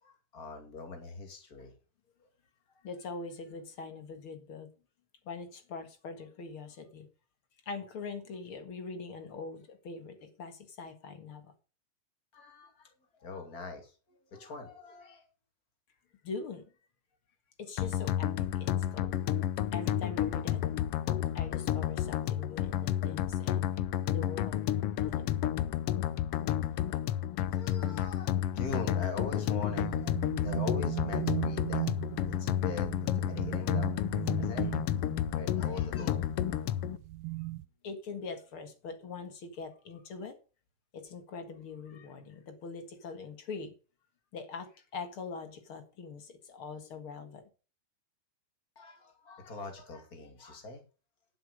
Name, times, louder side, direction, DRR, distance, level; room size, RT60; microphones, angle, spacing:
voice 1, 0.0-1.7 12.3-12.9 13.2-15.3 27.5-31.9 32.4-34.0 34.2-34.8 35.3-36.2 48.8-50.8, left 3 dB, 30° left, 5 dB, 2.8 m, -43 dB
voice 2, 2.8-4.7 5.3-7.1 7.7-11.5 16.2-16.7 17.6-19.1 19.7-20.6 21.3-23.7 24.1-24.6 25.0-25.2 37.8-40.4 40.9-43.7 44.3-47.4, left 4 dB, 50° left, 8 dB, 2.3 m, -42 dB
sound 1, 17.8-37.0, left 11 dB, 80° left, 1.3 m, -31 dB
sound 2, 29.7-37.7, right 21 dB, 85° right, 1.4 m, -38 dB
11.5 x 7.7 x 5.3 m, 0.35 s
omnidirectional pair, 3.5 m